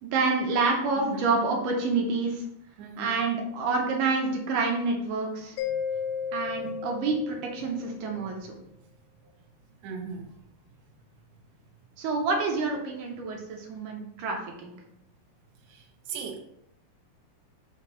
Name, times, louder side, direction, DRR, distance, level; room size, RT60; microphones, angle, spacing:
voice 1, 0.0-2.4 3.0-5.6 6.3-8.5 12.0-14.7, right 3 dB, 70° right, 0 dB, 2.0 m, -28 dB
voice 2, 2.8-3.1 9.8-10.3 15.7-16.4, right 5 dB, 85° right, -2 dB, 1.4 m, -38 dB
Mallet percussion, 5.6-8.1, left 7 dB, 80° left, 2.3 m, -34 dB
6.3 x 2.9 x 5.5 m, 0.75 s
omnidirectional pair, 4.6 m